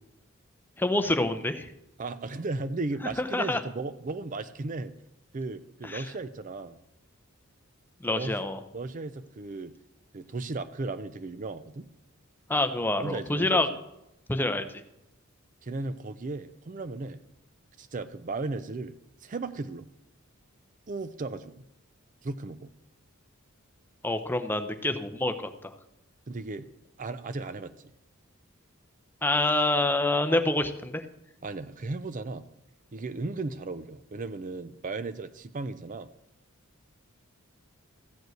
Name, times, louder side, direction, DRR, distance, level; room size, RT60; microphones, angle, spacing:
voice 1, 0.8-1.7 3.2-3.6 5.8-6.1 8.0-8.6 12.5-13.7 14.3-14.7 24.0-25.7 29.2-31.0, left 2 dB, 10° left, 8 dB, 0.6 m, -27 dB
voice 2, 2.0-4.9 5.3-6.8 8.0-8.4 8.7-9.7 10.1-11.9 12.8-13.7 15.6-17.2 17.8-19.9 20.9-21.6 22.2-22.7 26.3-26.7 27.0-27.9 31.4-32.4 32.9-36.1, right 3 dB, 35° right, 12 dB, 0.5 m, -35 dB
14.5 x 5.3 x 7.8 m, 0.86 s
head